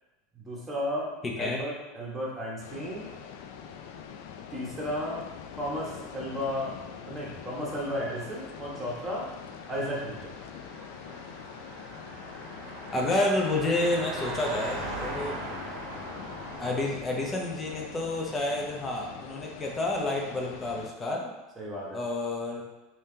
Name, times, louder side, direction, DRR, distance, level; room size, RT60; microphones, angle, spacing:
voice 1, 0.3-1.1 1.4-3.1 4.5-5.2 5.6-6.7 7.1-9.3 9.7-10.3 21.6-22.0, equal, 20° right, -4 dB, 1.2 m, -33 dB
voice 2, 1.2-1.6 12.9-15.4 16.6-21.3 21.9-22.6, left 2 dB, 20° left, 0 dB, 0.8 m, -29 dB
sound 1, 2.6-20.9, left 7 dB, 70° left, 0.3 m, -44 dB
Car passing by, 6.7-16.8, right 2 dB, 70° right, 0.9 m, -41 dB
3.4 x 2.9 x 3.3 m, 1.0 s
supercardioid pair, 125°, 0 cm